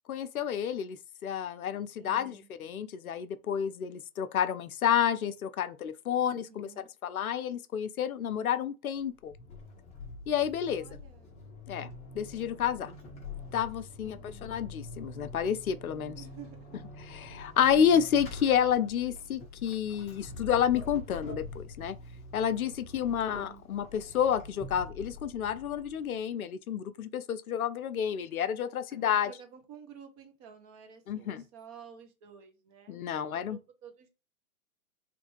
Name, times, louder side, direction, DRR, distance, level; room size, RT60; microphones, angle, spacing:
voice 1, 0.1-9.3 10.3-10.8 11.7-12.9 13.5-16.2 17.0-22.0 22.3-29.3 31.1-31.4 32.9-33.6, left 9 dB, 80° left, 0.5 m, -30 dB
voice 2, 2.0-2.5 6.2-6.9 10.6-11.3 14.0-14.6 16.1-16.8 23.2-23.6 28.9-34.1, right 7 dB, 25° right, 0.7 m, -52 dB
Vehicle / Accelerating revving vroom / Squeak, 9.0-26.2, left 2 dB, 15° left, 0.6 m, -45 dB
3.3 x 2.5 x 3.0 m
figure-of-eight pair, 115°, 42 cm